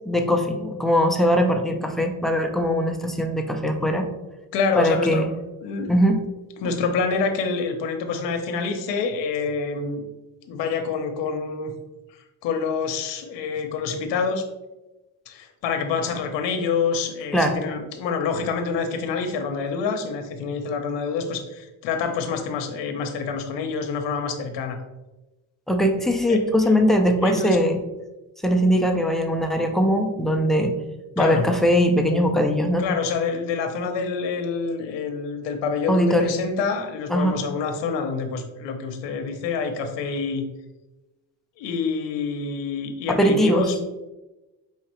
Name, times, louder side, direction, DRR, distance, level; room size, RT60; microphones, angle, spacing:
voice 1, 0.1-4.1 4.8-5.3 5.9-6.2 17.3-17.6 25.7-27.8 28.4-30.7 31.2-32.9 35.9-36.4 37.1-37.4 43.1-43.7, equal, ahead, 3 dB, 0.4 m, -21 dB
voice 2, 4.5-5.3 5.6-5.9 6.6-10.0 10.5-11.7 12.4-14.4 15.3-24.8 26.3-26.4 27.2-27.6 31.2-31.5 32.8-40.4 41.6-43.7, left 5 dB, 90° left, 5 dB, 0.7 m, -27 dB
4.7 x 3.2 x 3.0 m, 1.0 s
cardioid pair, 110°, 42 cm